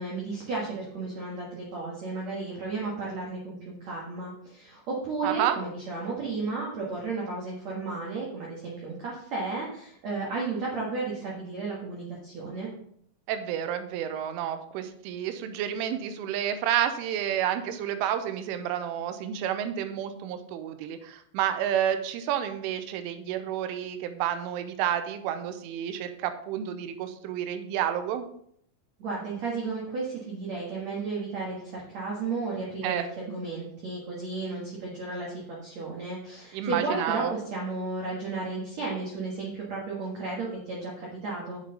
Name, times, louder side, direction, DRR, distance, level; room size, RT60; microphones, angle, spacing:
voice 1, 0.0-12.7 29.0-41.6, right 3 dB, 60° right, -4 dB, 1.8 m, -33 dB
voice 2, 5.2-5.6 13.3-28.3 32.8-33.1 36.5-37.3, right 10 dB, 85° right, 9 dB, 3.3 m, -30 dB
9.1 x 7.5 x 4.0 m, 0.67 s
omnidirectional pair, 5.5 m